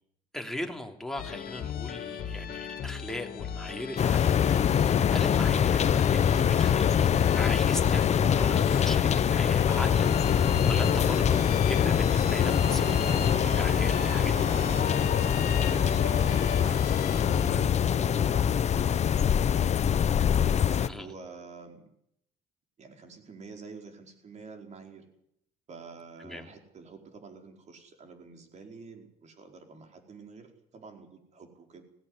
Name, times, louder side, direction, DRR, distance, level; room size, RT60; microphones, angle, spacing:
voice 1, 0.3-7.1 7.3-14.3 20.9-21.1 26.2-26.5, left 1 dB, 5° left, 3 dB, 3.1 m, -39 dB
sound 1, 1.2-17.6, left 8 dB, 60° left, 2.6 m, -36 dB
sound 2, 4.0-20.9, left 8 dB, 40° left, 0.9 m, -24 dB
sound 3, 9.5-16.8, right 5 dB, 70° right, 4.5 m, -43 dB
voice 2, 15.6-19.9 20.4-21.9 22.8-25.0 25.7-31.8, right 4 dB, 45° right, 4 dB, 4.9 m, -48 dB
17.5 x 16.5 x 9.8 m, 0.74 s
cardioid pair, 110°, 17 cm